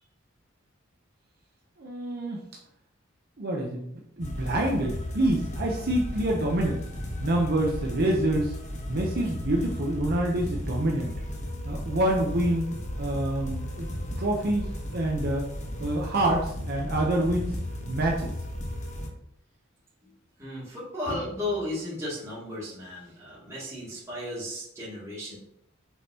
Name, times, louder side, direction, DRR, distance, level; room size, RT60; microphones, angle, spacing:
voice 1, 1.8-2.4 3.4-6.8 7.2-8.5 8.9-11.1 11.6-12.7 13.0-13.9 14.2-15.5 15.8-17.5 17.9-18.3, right 1 dB, 50° right, -1 dB, 0.8 m, -27 dB
sound 1, 4.2-19.1, left 1 dB, 35° left, 1.1 m, -35 dB
voice 2, 20.4-25.4, left 1 dB, 15° right, -9 dB, 2.5 m, -34 dB
7.1 x 5.5 x 2.9 m, 0.76 s
head